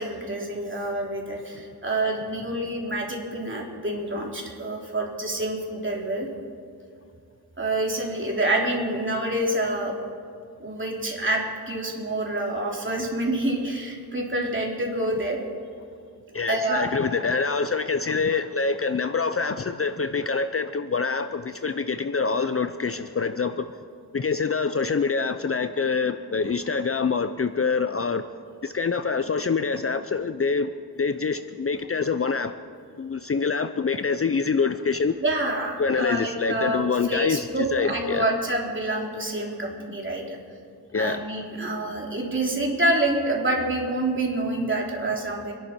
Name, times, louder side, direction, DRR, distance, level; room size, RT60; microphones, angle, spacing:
voice 1, 0.0-6.3 7.6-9.9 10.6-15.4 16.5-16.9 35.2-40.4 40.9-45.5, right 1 dB, 30° right, -1 dB, 3.2 m, -27 dB
voice 2, 16.3-23.7 24.1-28.2 28.6-30.7 31.0-32.5 33.0-35.1 35.8-38.2 40.9-41.2, left 5 dB, 35° left, 10 dB, 0.6 m, -25 dB
27.0 x 11.0 x 4.4 m, 2.3 s
wide cardioid pair, 75°, 39 cm